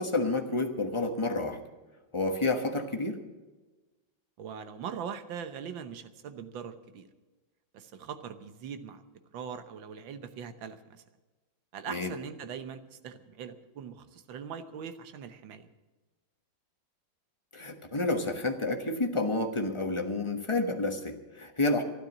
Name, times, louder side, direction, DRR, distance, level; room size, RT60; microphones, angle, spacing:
voice 1, 0.0-1.6 2.1-3.2 11.9-12.1 17.5-21.8, left 2 dB, 20° left, 5 dB, 1.0 m, -30 dB
voice 2, 4.4-7.1 7.7-9.0 9.3-11.0 11.7-15.7, right 7 dB, 75° right, 10 dB, 1.7 m, -41 dB
12.5 x 12.0 x 7.2 m, 1.2 s
omnidirectional pair, 2.1 m